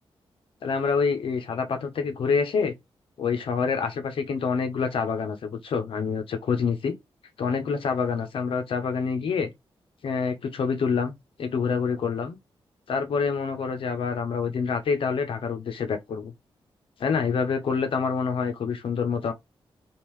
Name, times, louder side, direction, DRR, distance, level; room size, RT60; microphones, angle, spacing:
voice 1, 0.6-2.7 3.2-7.0 7.4-9.5 10.0-11.1 11.4-12.4 12.9-16.3 17.0-19.3, left 5 dB, 70° left, 0.8 m, -27 dB
3.7 x 2.4 x 3.0 m
wide cardioid pair, 180°, 9 cm